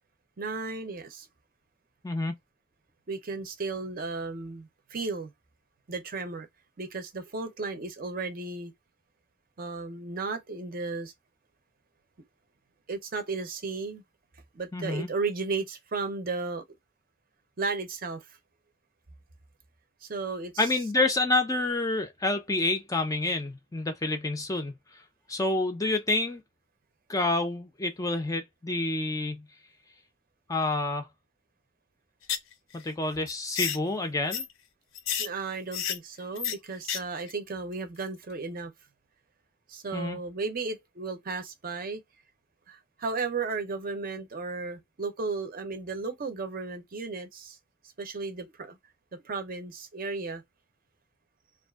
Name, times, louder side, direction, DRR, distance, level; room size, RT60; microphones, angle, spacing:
voice 1, 0.4-1.3 3.1-5.3 5.9-6.5 6.8-8.7 9.6-11.1 12.9-14.0 14.5-16.6 17.6-18.2 20.0-20.7 35.2-38.7 39.7-42.0 42.7-47.6 48.0-48.8 49.2-50.4, right 4 dB, 45° right, 0.6 m, -34 dB
voice 2, 2.0-2.3 14.7-15.1 20.6-25.0 25.3-26.4 27.1-29.5 30.5-31.1 32.7-34.5 39.9-40.2, left 2 dB, 15° left, 0.4 m, -28 dB
sound 1, 32.2-32.5 32.8-32.9 33.3-33.8 34.3-34.5 35.0-35.3 35.7-36.0 36.4-36.5 36.8-37.0 37.3-37.4, left 9 dB, 75° left, 0.5 m, -30 dB
2.5 x 2.3 x 2.2 m
head